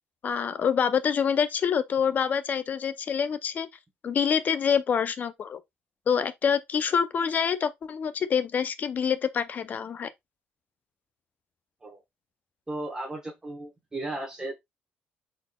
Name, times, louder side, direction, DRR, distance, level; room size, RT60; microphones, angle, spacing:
voice 1, 0.2-3.7 4.0-5.6 6.1-10.1, left 7 dB, 40° left, 0.5 m, -26 dB
voice 2, 12.7-14.5, right 2 dB, 15° right, 1.1 m, -35 dB
4.0 x 4.0 x 2.2 m
cardioid pair, 110°, 4 cm